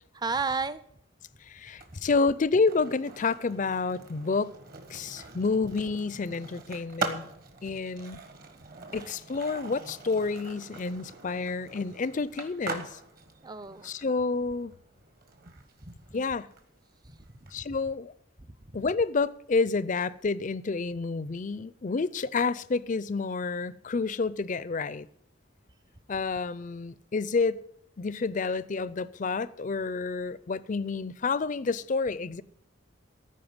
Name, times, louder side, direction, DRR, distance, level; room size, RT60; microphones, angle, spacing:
voice 1, 0.1-0.8 1.9-2.0 13.4-13.9 15.5-15.9 17.0-17.7, right 4 dB, 20° right, 0.5 m, -34 dB
voice 2, 1.4-4.5 4.9-7.3 7.6-8.2 8.9-13.0 13.8-14.7 16.1-16.5 17.5-18.1 18.7-25.1 26.1-27.6 28.0-32.4, left 4 dB, 35° left, 0.4 m, -29 dB
Skateboard, 1.7-17.5, right 4 dB, 45° right, 1.4 m, -42 dB
14.0 x 5.6 x 8.7 m
head